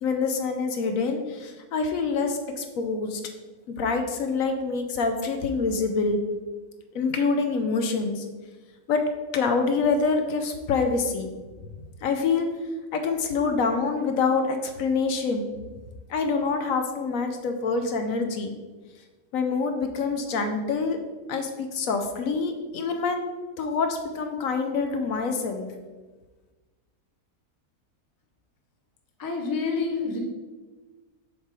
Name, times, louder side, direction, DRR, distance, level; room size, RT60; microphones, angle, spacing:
voice 1, 0.0-3.2 3.7-6.2 6.9-8.3 8.9-9.1 9.3-11.3 12.0-12.5 12.9-15.5 16.1-18.5 19.3-21.0 21.3-23.2 23.6-25.7, left 4 dB, 70° left, 6 dB, 1.0 m, -26 dB
voice 2, 29.2-30.2, left 4 dB, 25° left, 1 dB, 0.5 m, -28 dB
6.6 x 3.2 x 4.6 m, 1.3 s
omnidirectional pair, 1.6 m